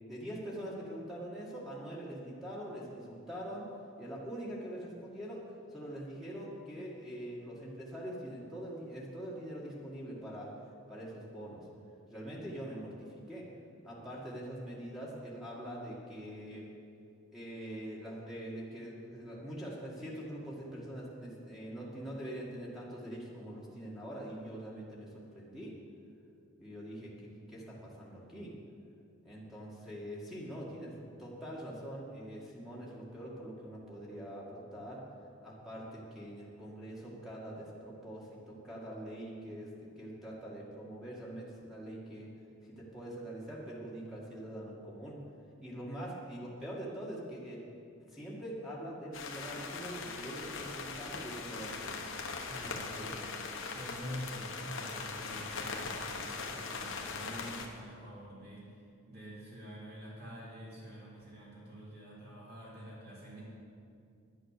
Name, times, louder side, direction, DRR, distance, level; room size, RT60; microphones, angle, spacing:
voice 1, 0.1-3.7 4.0-5.4 5.7-10.5 10.9-11.7 12.1-13.5 13.8-16.7 17.3-25.7 26.6-27.1 27.5-28.6 29.2-35.0 35.4-42.3 42.6-45.2 45.6-47.6 48.1-52.0 52.6-53.1, right 1 dB, ahead, -6 dB, 1.9 m, -44 dB
sound 1, 49.1-57.7, left 4 dB, 65° left, 1.2 m, -40 dB
voice 2, 52.3-53.4 53.7-58.7 59.1-63.4, equal, 50° right, -7 dB, 3.2 m, -47 dB
10.5 x 10.0 x 6.6 m, 2.4 s
head